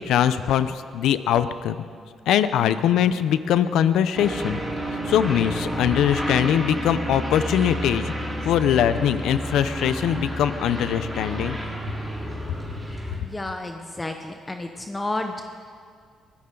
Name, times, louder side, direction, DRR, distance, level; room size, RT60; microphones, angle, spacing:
voice 1, 0.0-1.8 2.3-4.6 5.1-8.1 8.4-11.6, left 10 dB, 85° left, 12 dB, 0.7 m, -22 dB
sound 1, 4.1-13.2, equal, 5° right, 3.9 m, -30 dB
voice 2, 13.2-15.4, left 2 dB, 20° left, 5 dB, 1.0 m, -31 dB
23.5 x 14.5 x 3.9 m, 2.1 s
cardioid pair, 90°, 0 cm